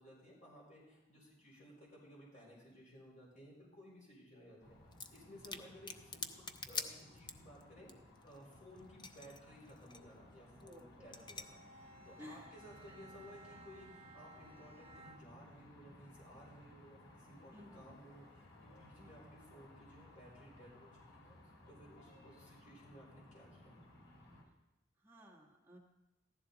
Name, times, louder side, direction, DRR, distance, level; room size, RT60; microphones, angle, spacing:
voice 1, 0.0-4.8 5.1-6.3 6.7-7.9 8.2-11.6 12.0-21.4 21.7-23.8, equal, 40° left, -4 dB, 4.2 m, -58 dB
sound 1, 4.6-24.4, left 1 dB, 80° left, 3.1 m, -60 dB
sound 2, 4.9-5.2 5.4-7.6 7.9-9.4 9.7-10.0 10.6-10.8 11.1-11.4, left 4 dB, 25° left, 0.6 m, -44 dB
voice 2, 10.6-11.1 12.2-12.5 12.9-13.0 17.5-17.8 19.0-19.1 25.0-25.8, equal, 10° right, -1 dB, 1.5 m, -55 dB
Bowed string instrument, 11.0-15.5, right 2 dB, 30° right, 1.3 m, -59 dB
14.5 x 12.0 x 3.9 m, 1.0 s
head